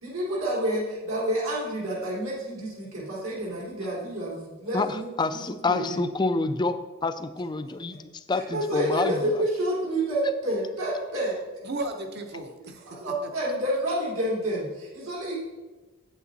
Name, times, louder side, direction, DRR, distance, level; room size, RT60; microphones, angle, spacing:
voice 1, 0.0-5.1 5.3-6.0 8.5-11.4 12.6-15.3, right 1 dB, 75° right, -5 dB, 3.3 m, -29 dB
voice 2, 4.7-9.4, left 3 dB, 20° left, 11 dB, 0.3 m, -28 dB
voice 3, 11.6-13.3, right 2 dB, 50° right, 6 dB, 0.9 m, -35 dB
8.4 x 8.3 x 4.0 m, 1.2 s
head